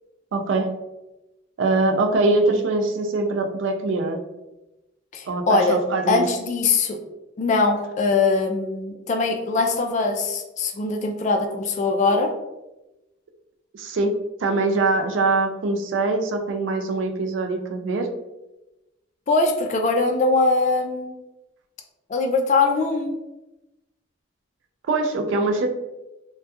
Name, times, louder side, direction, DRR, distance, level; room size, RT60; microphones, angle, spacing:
voice 1, 0.3-0.7 1.6-4.2 5.3-6.2 13.7-14.1 14.4-18.1 24.9-25.7, right 3 dB, 70° right, 4 dB, 0.4 m, -23 dB
voice 2, 5.1-5.8 6.1-7.0 7.4-12.3 19.3-21.1 22.1-23.2, left 3 dB, 40° left, 4 dB, 0.3 m, -22 dB
2.3 x 2.2 x 2.7 m, 0.98 s
head